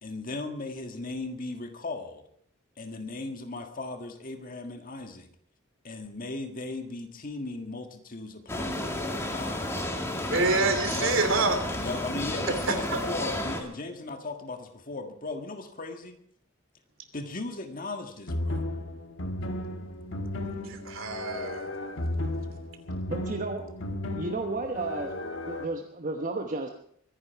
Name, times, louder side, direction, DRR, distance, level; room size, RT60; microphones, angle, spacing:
voice 1, 0.0-2.2 2.8-5.3 5.8-10.1 10.9-11.2 11.8-16.2 17.1-18.7, left 3 dB, 45° left, 6 dB, 1.8 m, -37 dB
sound 1, 8.5-13.6, left 1 dB, 15° left, 1.9 m, -32 dB
voice 2, 10.3-11.6 12.7-13.0 20.6-21.7, right 3 dB, 75° right, 7 dB, 2.8 m, -26 dB
sound 2, 18.3-25.7, left 1 dB, 65° left, 1.5 m, -34 dB
voice 3, 23.1-23.6 24.2-25.1 25.4-26.7, right 2 dB, 40° right, 4 dB, 1.1 m, -32 dB
23.5 x 10.5 x 4.6 m, 0.64 s
head